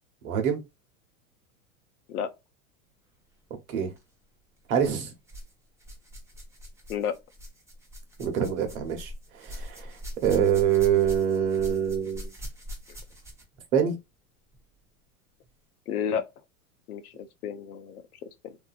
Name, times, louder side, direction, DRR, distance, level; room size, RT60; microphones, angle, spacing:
voice 1, 0.2-0.6 3.7-3.9 4.7-5.1 8.2-9.9 10.2-12.3 13.7-13.9, right 8 dB, 70° right, 1.0 m, -25 dB
sound 1, 3.8-4.0 4.8-5.5 5.8-13.6 14.5-14.6 15.4-15.5, equal, 5° right, 0.9 m, -42 dB
voice 2, 15.9-16.2 16.9-18.6, left 8 dB, 85° left, 0.6 m, -32 dB
2.6 x 2.5 x 2.4 m
hypercardioid pair, 110°, 43 cm